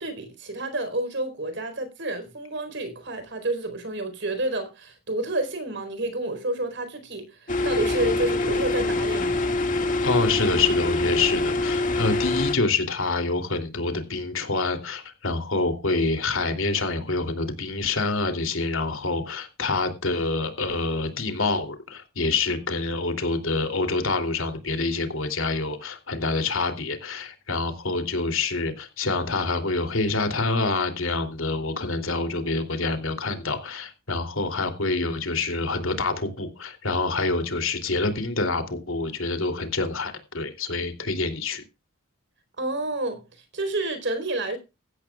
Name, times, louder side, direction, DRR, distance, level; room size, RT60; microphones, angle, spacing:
voice 1, 0.0-9.4 42.6-44.6, right 2 dB, 55° right, 4.3 m, -29 dB
sound 1, 7.5-12.5, left 2 dB, 40° left, 2.0 m, -25 dB
voice 2, 10.0-41.6, left 3 dB, 70° left, 3.0 m, -26 dB
16.0 x 13.0 x 2.4 m
head